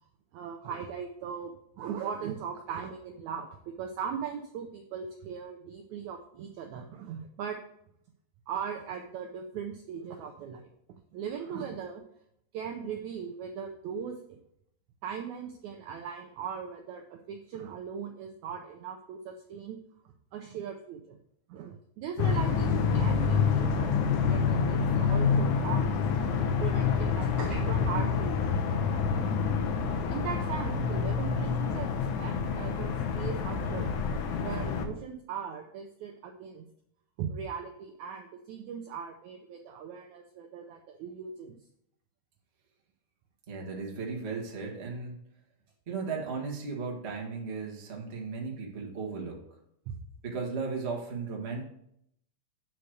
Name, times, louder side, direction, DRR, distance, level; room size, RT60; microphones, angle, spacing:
voice 1, 0.3-7.6 8.5-10.7 11.1-12.0 12.5-14.4 15.0-19.8 20.3-21.2 21.5-23.9 24.2-26.1 26.6-29.0 30.1-31.9 32.2-33.9 34.4-36.7 37.2-41.6 49.9-50.0, right 7 dB, 80° right, 3 dB, 1.7 m, -39 dB
sound 1, 22.2-34.9, left 5 dB, 70° left, 2.0 m, -27 dB
voice 2, 43.5-45.1 45.9-49.4 50.2-51.6, right 4 dB, 45° right, -1 dB, 0.8 m, -36 dB
8.2 x 4.6 x 6.4 m, 0.73 s
omnidirectional pair, 4.1 m